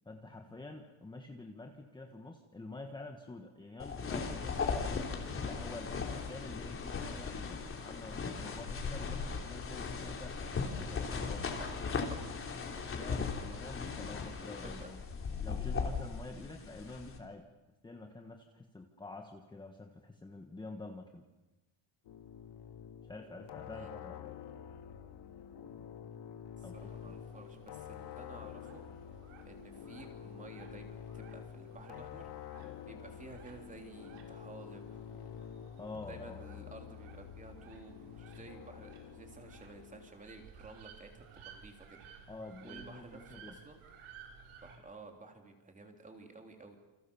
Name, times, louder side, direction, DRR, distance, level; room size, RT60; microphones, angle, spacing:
voice 1, 0.0-5.1 5.4-11.6 12.9-15.0 15.4-17.5 17.8-21.3 23.0-24.2 26.6-27.2 35.8-36.4 42.3-43.6, left 2 dB, 10° left, 4 dB, 1.4 m, -48 dB
sound 1, 3.8-17.2, left 5 dB, 25° left, 3.3 m, -38 dB
sound 2, 22.0-40.1, left 9 dB, 55° left, 2.0 m, -48 dB
voice 2, 26.6-28.9 29.5-32.3 32.8-35.4 36.0-42.0 42.6-43.8 44.6-46.8, right 3 dB, 15° right, 4 dB, 3.4 m, -53 dB
sound 3, 26.7-44.8, right 6 dB, 85° right, 5.6 m, -57 dB
29.0 x 27.5 x 7.1 m, 1.1 s
cardioid pair, 180°, 48 cm